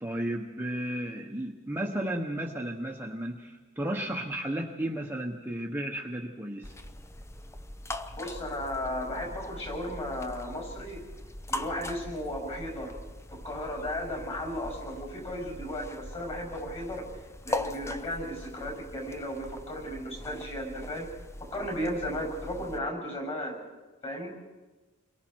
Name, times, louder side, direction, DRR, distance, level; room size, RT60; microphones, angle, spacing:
voice 1, 0.0-6.7, right 1 dB, 10° right, 0 dB, 1.2 m, -33 dB
sound 1, 6.6-22.8, left 1 dB, 15° left, 0.7 m, -41 dB
voice 2, 8.1-11.1 11.5-13.0 13.3-17.1 17.4-21.1 21.4-23.6 24.0-24.3, left 1 dB, 30° left, 1 dB, 6.8 m, -35 dB
29.5 x 23.0 x 4.7 m, 1.2 s
head